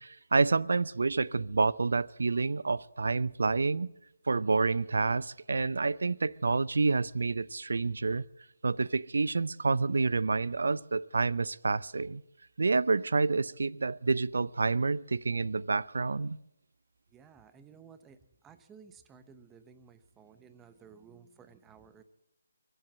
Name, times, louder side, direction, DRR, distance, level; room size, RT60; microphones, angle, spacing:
voice 1, 0.0-3.9 4.3-8.2 8.6-12.2 12.6-16.4, right 4 dB, 75° right, 0.5 m, -28 dB
voice 2, 17.1-22.0, right 6 dB, 10° right, 0.8 m, -55 dB
23.5 x 7.9 x 7.3 m
figure-of-eight pair, 150°, 0 cm